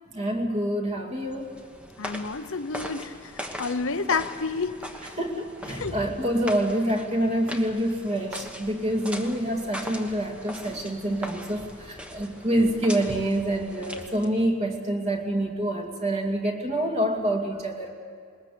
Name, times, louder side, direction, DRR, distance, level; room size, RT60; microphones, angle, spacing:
voice 1, 0.1-1.5 5.2-17.9, right 1 dB, 30° right, 2 dB, 2.3 m, -27 dB
sound 1, 1.2-14.5, equal, 5° right, 1.2 m, -40 dB
voice 2, 2.0-3.1 3.6-4.8 5.7-6.0, left 4 dB, 65° left, 10 dB, 0.8 m, -29 dB
20.5 x 20.0 x 8.4 m, 2.2 s
head